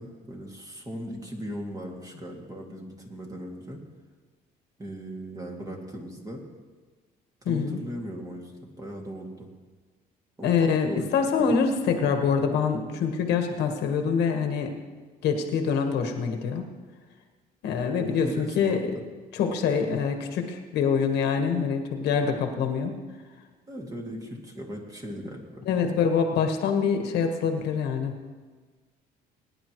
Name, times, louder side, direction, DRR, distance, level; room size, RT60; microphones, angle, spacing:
voice 1, 0.0-3.8 4.8-6.4 7.4-9.5 10.4-11.5 18.0-19.0 23.7-25.7, equal, 20° right, 0 dB, 2.3 m, -38 dB
voice 2, 7.4-7.8 10.4-14.7 15.2-16.6 17.6-18.8 19.3-22.9 25.7-28.1, left 6 dB, 80° left, 4 dB, 1.5 m, -25 dB
21.0 x 10.0 x 3.1 m, 1.4 s
cardioid pair, 110°, 17 cm